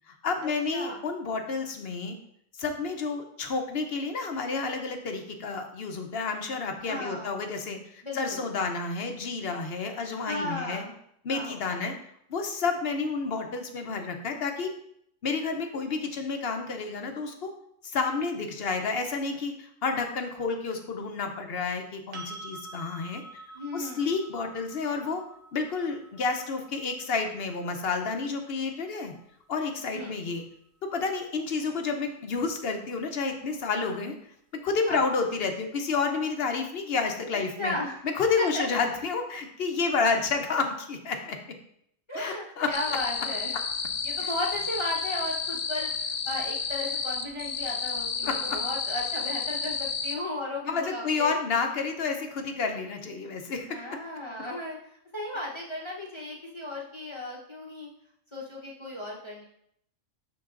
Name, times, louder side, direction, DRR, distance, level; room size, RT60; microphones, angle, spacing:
voice 1, 0.1-2.2 2.6-10.8 11.2-11.9 12.3-14.7 15.2-17.5 17.8-23.2 23.7-25.2 25.5-29.1 29.5-30.4 30.8-34.1 34.6-37.7 38.0-41.4 42.1-43.0 44.2-44.3 48.2-48.6 50.6-53.8, left 4 dB, 55° left, 5 dB, 0.9 m, -30 dB
voice 2, 6.8-7.3 8.0-8.4 10.2-10.9 11.3-11.9 23.5-24.0 29.9-30.1 34.9-35.0 37.6-38.0 38.4-38.6 42.1-43.6 44.0-51.3 53.7-54.8 55.1-57.9 58.3-59.4, left 1 dB, 25° left, -4 dB, 0.8 m, -35 dB
sound 1, 22.1-29.9 32.8-32.9, right 2 dB, 90° right, 1.2 m, -48 dB
sound 2, 42.7-50.2, left 5 dB, 75° left, 1.1 m, -31 dB
11.0 x 3.9 x 2.5 m, 0.71 s
omnidirectional pair, 1.3 m